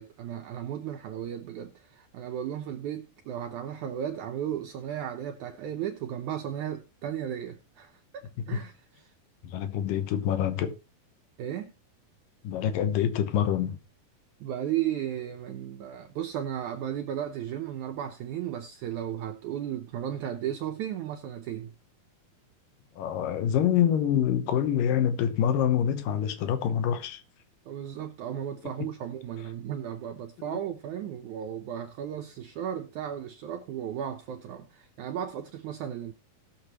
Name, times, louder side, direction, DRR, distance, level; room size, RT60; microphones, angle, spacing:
voice 1, 0.0-9.1 11.4-11.7 14.4-21.7 27.7-36.1, right 10 dB, 80° right, 1.8 m, -35 dB
voice 2, 9.4-10.7 12.4-13.8 23.0-27.2 28.8-28.9 30.4-30.6, left 9 dB, 70° left, 2.5 m, -26 dB
19.0 x 6.8 x 3.0 m
omnidirectional pair, 4.4 m